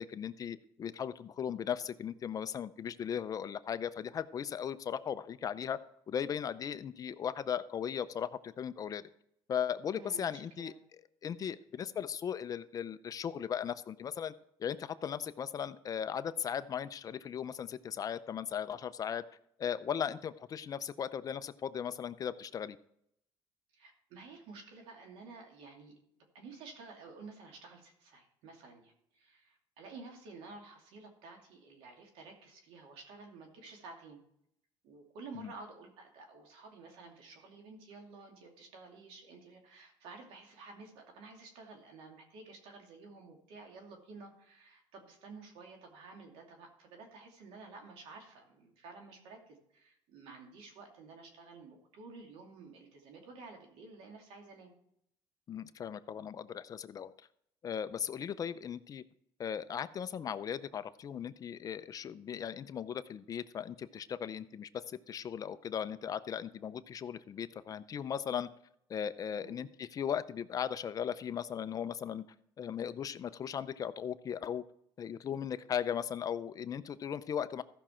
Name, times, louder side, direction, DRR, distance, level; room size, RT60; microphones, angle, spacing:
voice 1, 0.0-5.8 6.1-9.0 9.5-10.7 11.2-14.3 14.6-19.2 19.6-22.8 35.4-35.5 55.5-57.1 57.6-59.0 59.4-68.5 68.9-72.3 72.6-74.6 75.0-77.6, left 8 dB, 40° left, 13 dB, 0.5 m, -37 dB
voice 2, 9.9-10.8 23.7-34.2 34.8-54.7 69.3-69.6, right 3 dB, 80° right, 2 dB, 2.6 m, -52 dB
14.5 x 6.1 x 4.4 m, 0.72 s
cardioid pair, 115°, 9 cm